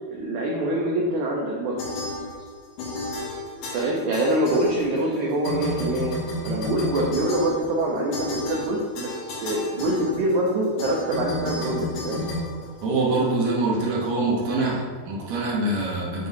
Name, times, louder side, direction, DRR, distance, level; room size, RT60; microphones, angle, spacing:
voice 1, 0.1-1.8 3.7-6.2 6.4-12.3, right 1 dB, 85° right, -2 dB, 1.7 m, -25 dB
sound 1, 1.8-2.5 2.8-5.1 5.4-13.3, left 2 dB, 90° left, 3.9 m, -32 dB
voice 2, 12.8-16.3, right 2 dB, 65° right, -4 dB, 1.8 m, -24 dB
9.1 x 4.7 x 2.7 m, 1.5 s
omnidirectional pair, 4.3 m